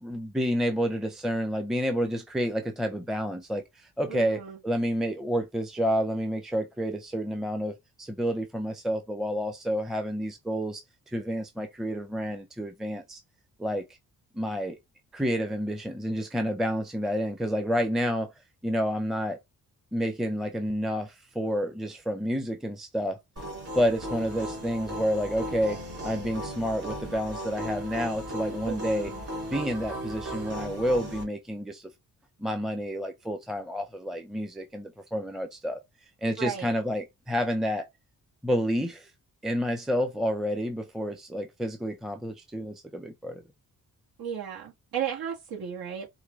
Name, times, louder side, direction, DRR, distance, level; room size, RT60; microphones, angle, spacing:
voice 1, 0.0-7.7 8.0-13.2 13.6-13.9 14.3-14.8 15.1-18.3 18.6-19.4 19.9-23.2 23.8-29.1 29.5-31.9 32.4-35.8 36.2-37.9 38.4-39.1 39.4-43.4, equal, ahead, 0.6 m, -29 dB
voice 2, 4.1-4.6 28.6-29.3 36.4-36.8 44.2-46.1, right 8 dB, 80° right, 1.8 m, -35 dB
sound 1, 23.4-31.2, equal, 40° right, 2.8 m, -36 dB
4.8 x 2.7 x 3.2 m
cardioid pair, 90°, 36 cm